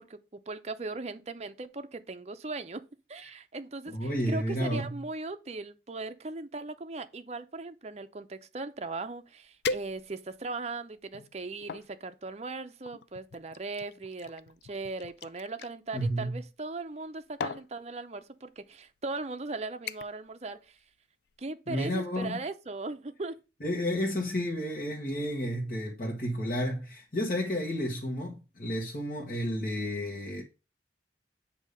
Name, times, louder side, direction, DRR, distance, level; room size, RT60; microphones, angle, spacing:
voice 1, 0.0-2.8 3.1-20.8 21.4-23.3, right 3 dB, 35° right, 0.6 m, -38 dB
voice 2, 3.9-5.0 15.9-16.4 21.7-22.4 23.6-30.4, equal, 50° left, 1.2 m, -31 dB
sound 1, 9.0-9.1 9.6-10.4 11.0-11.9 12.8-15.7 16.8-17.1 17.4-17.7 18.6-18.7 19.2-19.4 19.9-20.3 20.6-20.9 21.3-21.4, left 4 dB, 65° left, 0.4 m, -39 dB
8.1 x 2.8 x 5.1 m
head